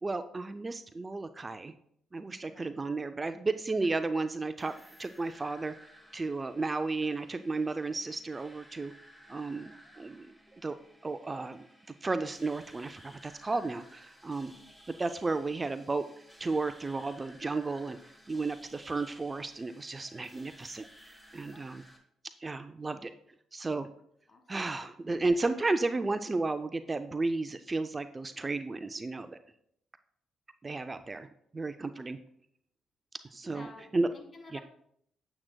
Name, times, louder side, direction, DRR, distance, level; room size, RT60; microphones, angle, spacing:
voice 1, 0.0-1.7 2.1-4.7 5.0-5.8 6.1-8.9 9.3-10.3 10.5-10.8 11.0-11.7 12.0-14.5 15.0-16.1 16.4-18.0 18.3-21.8 22.4-23.1 23.5-23.9 24.5-29.4 30.6-32.2 33.3-33.7 33.9-34.1 34.5-34.6, right 3 dB, 25° right, 10 dB, 0.3 m, -33 dB
sound 1, 4.6-22.0, equal, ahead, 1.1 m, -57 dB
voice 2, 33.5-34.6, left 2 dB, 35° left, 4 dB, 1.5 m, -53 dB
8.8 x 7.5 x 2.2 m, 0.69 s
cardioid pair, 90°, 0 cm